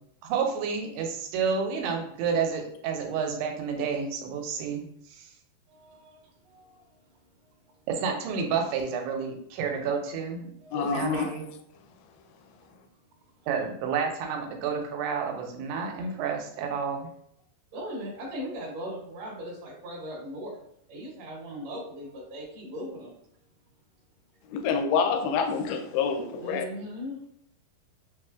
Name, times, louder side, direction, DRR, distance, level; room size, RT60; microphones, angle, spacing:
voice 1, 0.2-4.9 5.1-5.2 7.9-10.5 10.9-11.4 13.5-17.1, right 6 dB, 85° right, 2 dB, 2.6 m, -30 dB
voice 2, 5.7-7.2 7.6-7.7 10.6-11.3 17.7-20.6 20.9-23.2 26.4-27.3, equal, 55° right, -5 dB, 2.2 m, -39 dB
voice 3, 10.7-11.3 24.5-26.7, left 6 dB, 90° left, 5 dB, 2.6 m, -27 dB
6.7 x 2.4 x 2.4 m, 0.70 s
omnidirectional pair, 4.6 m